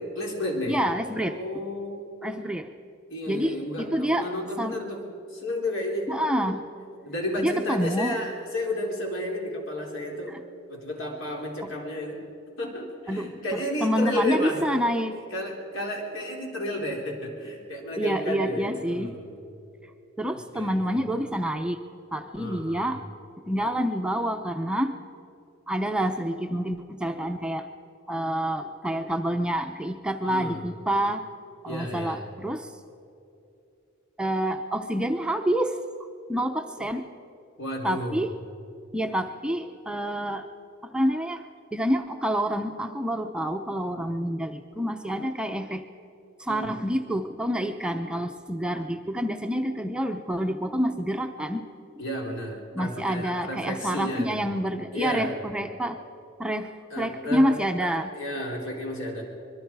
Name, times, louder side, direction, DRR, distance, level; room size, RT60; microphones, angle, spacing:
voice 1, 0.1-0.8 1.2-2.1 3.1-5.0 5.3-6.1 7.0-10.4 10.7-12.2 12.6-14.9 15.3-19.3 20.5-21.0 22.4-22.9 30.2-30.6 31.7-32.2 36.8-36.9 37.6-38.2 46.5-46.7 52.0-54.4 54.9-55.3 56.9-59.2, left 1 dB, 70° left, -1 dB, 4.3 m, -32 dB
voice 2, 0.7-1.4 2.2-2.7 3.3-4.3 4.6-4.8 6.1-6.7 7.4-8.2 10.3-10.4 11.6-11.7 13.1-15.2 18.0-19.1 20.2-21.8 22.1-23.0 23.5-25.0 25.7-27.7 28.1-31.2 31.6-32.7 34.2-35.8 36.3-37.0 37.8-38.3 38.9-40.5 40.8-41.4 41.7-45.9 46.4-51.7 52.7-56.0 56.4-58.1, equal, 5° right, 5 dB, 0.6 m, -28 dB
25.0 x 22.5 x 4.7 m, 2.7 s
head